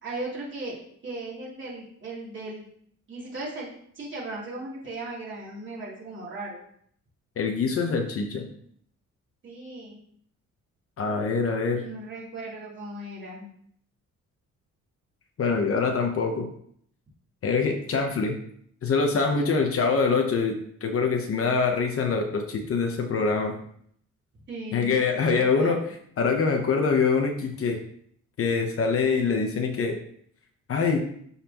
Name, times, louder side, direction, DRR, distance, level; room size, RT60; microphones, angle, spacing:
voice 1, 0.0-2.6 3.1-3.7 3.9-6.6 9.4-10.0 11.8-13.4 19.4-19.5 24.5-25.8, right 2 dB, 40° right, -6 dB, 3.0 m, -37 dB
voice 2, 7.4-8.4 11.0-11.8 15.4-16.5 17.4-18.4 18.8-23.5 24.7-25.8 26.2-27.8 28.4-30.0 30.7-31.0, left 4 dB, 45° left, 4 dB, 0.9 m, -24 dB
12.0 x 4.2 x 2.9 m, 0.64 s
wide cardioid pair, 170°, 31 cm